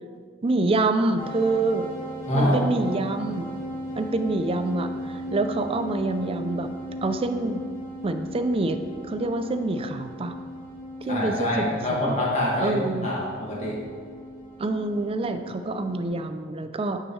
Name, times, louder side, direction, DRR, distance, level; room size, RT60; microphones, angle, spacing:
voice 1, 0.4-1.9 2.3-3.5 3.9-6.7 7.0-7.6 8.0-8.8 9.1-10.3 11.0-11.7 12.1-12.2 12.6-13.1 14.6-17.0, right 2 dB, 30° right, 8 dB, 0.4 m, -26 dB
sound 1, 1.2-16.1, equal, 15° left, 1.6 m, -37 dB
voice 2, 2.3-2.6 11.1-12.7 13.0-13.8, left 1 dB, 35° left, -5 dB, 1.9 m, -25 dB
9.0 x 6.3 x 3.2 m, 2.1 s
head